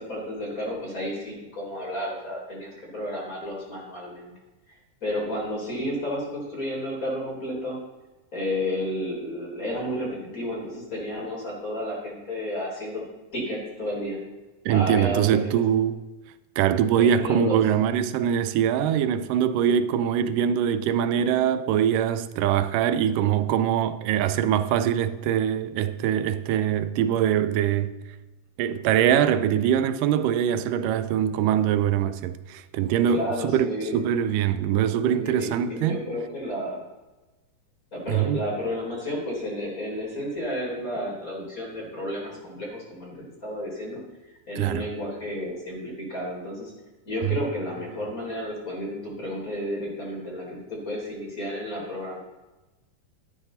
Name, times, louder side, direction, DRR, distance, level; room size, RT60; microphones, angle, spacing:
voice 1, 0.0-4.3 4.7-7.8 8.3-13.0 13.3-14.2 14.7-15.6 17.0-17.6 33.1-34.0 35.0-36.8 37.9-44.0 44.5-46.7 47.0-52.2, left 1 dB, 25° left, 4.1 m, -32 dB
voice 2, 14.7-16.0 16.6-27.9 28.6-36.0 38.1-38.4 44.6-44.9 47.2-47.4, right 9 dB, 80° right, 2.0 m, -23 dB
13.5 x 11.5 x 4.1 m
omnidirectional pair, 4.1 m